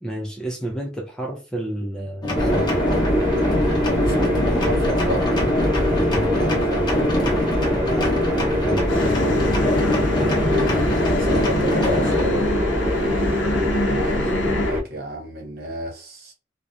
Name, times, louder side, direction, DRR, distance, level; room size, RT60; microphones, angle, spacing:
voice 1, 0.0-2.7 6.0-6.3 8.6-9.1, right 1 dB, 5° left, 0.4 m, -30 dB
sound 1, 2.2-12.3, left 1 dB, 25° left, 0.8 m, -24 dB
sound 2, 2.4-14.8, equal, 15° right, 0.8 m, -23 dB
voice 2, 3.9-5.3 6.6-7.0 11.0-12.5 13.7-16.3, equal, 55° right, 1.0 m, -32 dB
sound 3, 8.9-14.7, left 2 dB, 80° left, 0.5 m, -26 dB
2.5 x 2.2 x 2.4 m
head